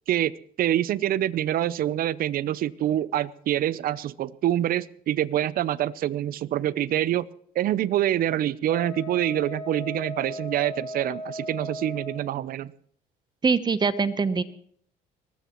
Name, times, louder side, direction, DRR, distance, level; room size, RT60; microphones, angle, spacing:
voice 1, 0.6-7.2 7.6-12.7, right 12 dB, 60° right, 19 dB, 0.6 m, -26 dB
Wind instrument woodwind instrument, 8.7-12.4, left 1 dB, 20° left, 4.4 m, -37 dB
voice 2, 13.4-14.4, right 5 dB, 25° right, 13 dB, 0.9 m, -23 dB
22.0 x 19.5 x 3.1 m, 0.63 s
cardioid pair, 110°, 17 cm